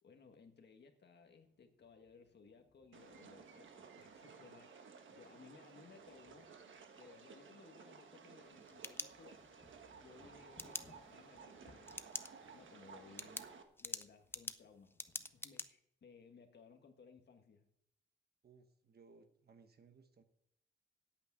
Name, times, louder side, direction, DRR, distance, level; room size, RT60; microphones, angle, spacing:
voice 1, 0.0-6.5 6.9-9.5 9.9-12.0 12.5-13.5 13.8-17.7, left 5 dB, 60° left, 5 dB, 1.5 m, -61 dB
sound 1, 1.2-4.3 4.6-4.9 5.4-7.2 7.4-7.5 7.8-15.4, left 3 dB, 30° left, 1.6 m, -71 dB
sound 2, 2.9-13.6, right 5 dB, 75° right, 1.4 m, -57 dB
sound 3, 8.4-9.6 10.6-10.8 11.9-12.3 12.7-12.8 13.2-15.7, left 2 dB, 10° left, 0.4 m, -45 dB
voice 2, 18.4-20.2, right 4 dB, 55° right, 7 dB, 1.3 m, -63 dB
8.7 x 8.4 x 8.6 m, 0.77 s
wide cardioid pair, 170°, 20 cm